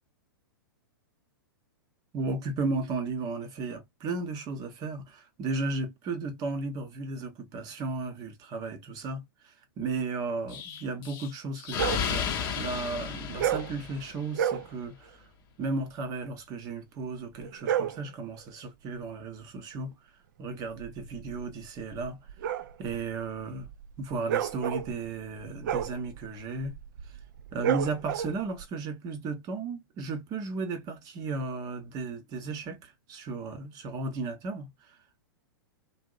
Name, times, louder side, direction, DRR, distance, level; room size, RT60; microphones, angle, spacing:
voice 1, 2.1-15.2 15.6-19.9 20.4-22.2 22.8-23.7 24.0-26.8 27.5-34.7, right 3 dB, 30° right, 0.9 m, -34 dB
Explosion, 10.5-14.4, left 7 dB, 30° left, 0.8 m, -33 dB
sound 1, 11.7-12.1 13.3-13.8 14.3-14.7 17.4-18.1 20.6-28.6, right 9 dB, 55° right, 0.4 m, -32 dB
2.7 x 2.0 x 2.4 m
hypercardioid pair, 110°, 12 cm